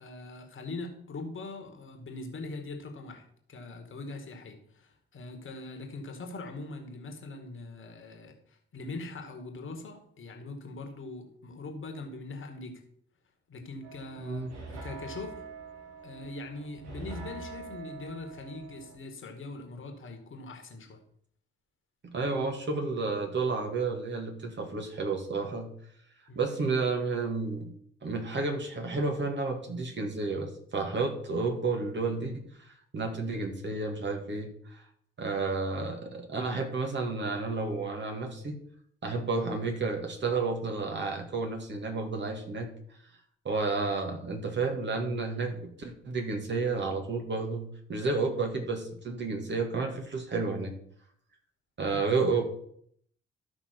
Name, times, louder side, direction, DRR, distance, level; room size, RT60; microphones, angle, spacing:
voice 1, 0.0-12.8 13.5-15.4 16.0-21.0 26.3-26.5 45.3-45.5, left 3 dB, 40° left, 5 dB, 2.0 m, -42 dB
sound 1, 13.8-19.0, right 4 dB, 60° right, 1.9 m, -44 dB
voice 2, 14.2-14.5 22.0-25.7 26.4-27.7 28.0-32.4 32.9-34.8 35.2-38.6 39.0-42.7 43.4-50.7 51.8-52.4, right 3 dB, 40° right, 2 dB, 2.1 m, -31 dB
13.0 x 5.7 x 4.6 m, 0.66 s
figure-of-eight pair, 40°, 30 cm